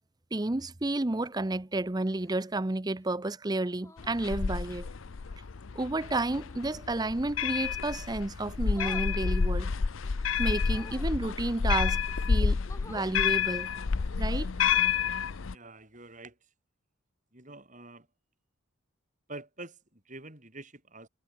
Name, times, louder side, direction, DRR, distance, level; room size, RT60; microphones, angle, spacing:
voice 1, 0.3-4.9 5.8-9.7 10.4-12.0 12.3-12.6 12.9-13.7 14.2-14.5, right 2 dB, 20° right, 0.6 m, -31 dB
sound 1, 2.1-2.6 3.8-4.2 6.4-6.9 8.7-9.1 10.6-11.2 11.9-12.0 12.4-13.1 14.8-15.0, left 2 dB, 15° left, 1.9 m, -50 dB
sound 2, 4.0-15.5, left 6 dB, 65° left, 0.6 m, -29 dB
voice 2, 15.5-16.4 17.3-18.1 19.3-21.1, right 2 dB, 35° right, 6.5 m, -47 dB
head